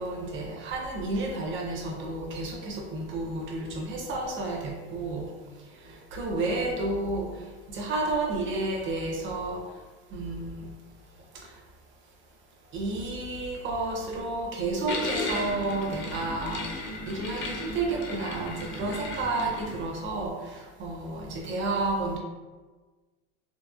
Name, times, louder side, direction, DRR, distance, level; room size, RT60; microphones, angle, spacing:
voice 1, 0.0-5.2 5.9-7.3 7.7-9.6 10.1-10.7 12.7-16.6 17.1-22.2, right 2 dB, 40° right, -1 dB, 0.7 m, -31 dB
sound 1, 14.9-19.8, left 2 dB, 40° left, 0.5 m, -35 dB
2.9 x 2.0 x 2.3 m, 1.3 s
supercardioid pair, 120°, 29 cm